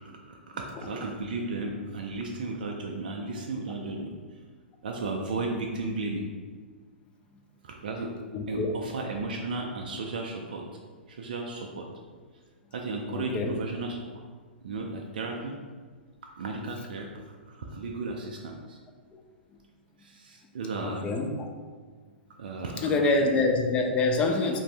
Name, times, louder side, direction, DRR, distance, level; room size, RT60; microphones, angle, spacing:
voice 1, 0.3-4.1 4.8-6.2 7.6-8.1 8.5-10.6 11.1-11.9 12.7-14.0 14.6-15.6 16.4-17.1 17.5-18.8 20.0-21.1 22.4-22.9, right 3 dB, 55° right, 0 dB, 0.4 m, -34 dB
voice 2, 8.3-8.9 13.1-13.6 14.7-14.8 20.8-21.5 22.8-24.6, left 3 dB, 20° left, 3 dB, 0.3 m, -26 dB
3.2 x 2.6 x 3.2 m, 1.5 s
figure-of-eight pair, 110°, 6 cm